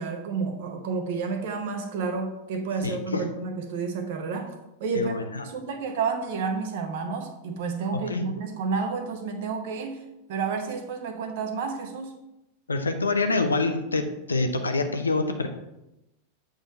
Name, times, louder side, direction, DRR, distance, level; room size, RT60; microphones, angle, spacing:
voice 1, 0.0-4.5 4.8-5.2 5.4-12.2, right 5 dB, 50° right, 6 dB, 1.0 m, -30 dB
voice 2, 2.8-3.2 5.0-5.4 7.9-8.3 12.7-15.5, left 3 dB, 75° left, 6 dB, 0.7 m, -26 dB
8.4 x 3.8 x 4.2 m, 0.91 s
figure-of-eight pair, 90°, 0 cm